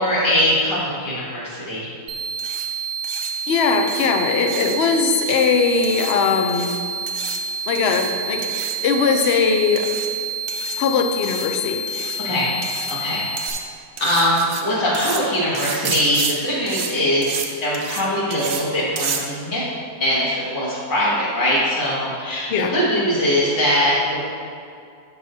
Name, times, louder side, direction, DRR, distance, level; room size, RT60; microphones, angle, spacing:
voice 1, 0.0-1.9 12.2-12.5 12.9-13.3 14.0-17.3 17.6-19.6 20.0-24.2, equal, 90° left, -8 dB, 2.8 m, -21 dB
sound 1, 2.1-13.5, right 3 dB, 70° right, 0.6 m, -28 dB
sound 2, 2.4-2.7 3.0-3.3 3.9-4.1 4.5-4.8 5.2-5.5 5.8-6.1 6.5-6.8 7.1-7.4 7.7-8.1 8.4-8.8 9.1-9.4 9.8-10.1 10.5-10.8 11.2-11.5 11.9-12.2 12.6-13.0 13.4-13.6 14.0-14.6 14.9-15.2 15.5-16.3 16.7-16.9 17.2-17.5 17.7-18.0 18.3-18.6 19.0-19.2, right 6 dB, 85° right, 1.4 m, -30 dB
voice 2, 3.5-6.7 7.7-9.9 10.8-11.8 22.5-22.7, left 5 dB, 70° left, 5 dB, 0.6 m, -20 dB
13.0 x 4.9 x 2.7 m, 2.4 s
omnidirectional pair, 1.9 m